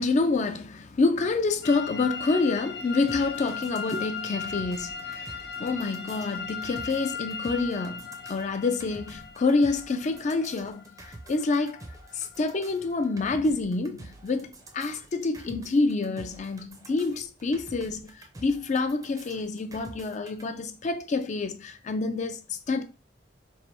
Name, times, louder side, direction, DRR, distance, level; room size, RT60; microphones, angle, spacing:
voice 1, 0.0-11.8 12.1-22.8, left 3 dB, 40° left, 0.4 m, -27 dB
sound 1, 1.6-13.2, left 6 dB, 60° left, 0.8 m, -38 dB
sound 2, 3.1-20.4, right 2 dB, 20° right, 0.5 m, -48 dB
3.2 x 2.5 x 4.3 m
head